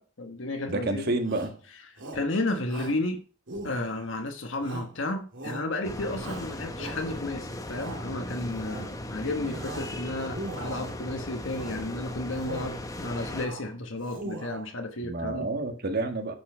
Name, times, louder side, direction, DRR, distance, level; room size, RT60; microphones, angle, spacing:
voice 1, 0.0-1.2 1.9-3.2 3.6-15.5, left 2 dB, 70° left, 4 dB, 1.2 m, -32 dB
voice 2, 0.7-1.5 15.0-16.3, right 2 dB, 55° right, 6 dB, 1.6 m, -29 dB
Shout, 1.2-1.6 2.0-2.3 2.7-3.0 3.5-4.1 4.6-5.0 5.3-5.7 6.1-7.2 7.6-8.0 8.5-8.9 9.3-9.9 10.2-11.0 11.5-11.8 12.3-12.8 13.1-13.6 14.0-14.7, right 2 dB, 70° right, 2.5 m, -40 dB
sound 1, 5.8-13.5, left 1 dB, 15° left, 1.0 m, -38 dB
10.5 x 5.7 x 6.0 m, 0.39 s
head